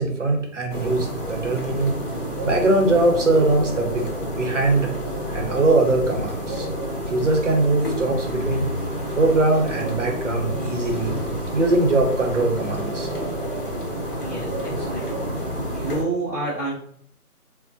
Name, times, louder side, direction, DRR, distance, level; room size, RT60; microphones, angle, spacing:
voice 1, 0.0-1.9 2.4-4.9 5.3-6.7 7.1-8.7 9.2-11.1 11.5-13.1, right 2 dB, 50° right, 2 dB, 0.8 m, -21 dB
sound 1, 0.7-16.0, equal, 35° left, 1.0 m, -29 dB
voice 2, 14.2-15.2 15.7-16.7, right 2 dB, 10° right, -15 dB, 0.7 m, -29 dB
4.0 x 2.1 x 2.6 m, 0.64 s
figure-of-eight pair, 155°, 45 cm